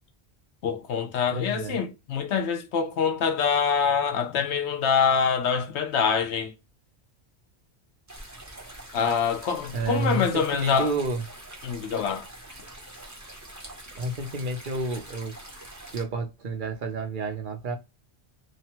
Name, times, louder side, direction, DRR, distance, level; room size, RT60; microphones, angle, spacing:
voice 1, 0.6-6.5 8.9-10.9 11.6-12.3, left 6 dB, 80° left, 1.0 m, -25 dB
voice 2, 1.3-1.8 9.7-11.2 14.0-15.3 15.9-17.8, right 3 dB, 55° right, 0.8 m, -30 dB
sound 1, 8.1-16.0, right 1 dB, 20° right, 0.8 m, -44 dB
3.0 x 2.2 x 2.8 m
omnidirectional pair, 1.1 m